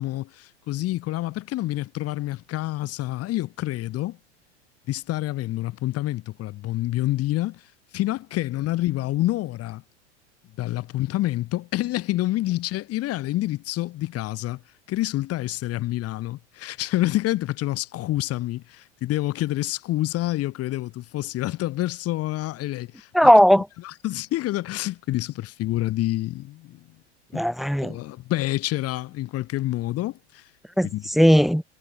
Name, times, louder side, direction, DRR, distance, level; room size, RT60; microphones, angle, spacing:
voice 1, 0.0-4.2 4.9-7.6 7.9-9.8 10.6-14.6 14.9-23.3 23.8-26.8 27.3-27.5 27.8-30.4 30.8-31.1, left 16 dB, 40° left, 6.0 m, -27 dB
voice 2, 23.1-23.7 27.3-28.0 30.8-31.6, equal, ahead, 0.7 m, -17 dB
hypercardioid pair, 100°, 35 cm